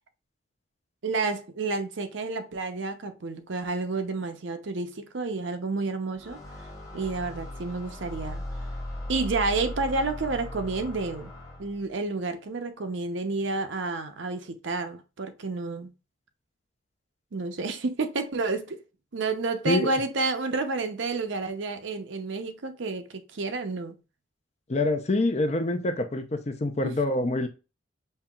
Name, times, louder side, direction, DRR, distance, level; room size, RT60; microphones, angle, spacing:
voice 1, 1.0-6.4 6.9-8.4 9.1-11.3 11.6-15.9 17.3-18.8 19.1-24.0 26.8-26.9, right 3 dB, 75° right, 0.7 m, -30 dB
sound 1, 6.2-11.9, left 1 dB, 15° left, 1.2 m, -38 dB
voice 2, 24.7-27.5, left 2 dB, 35° left, 0.5 m, -26 dB
5.5 x 2.8 x 2.3 m
head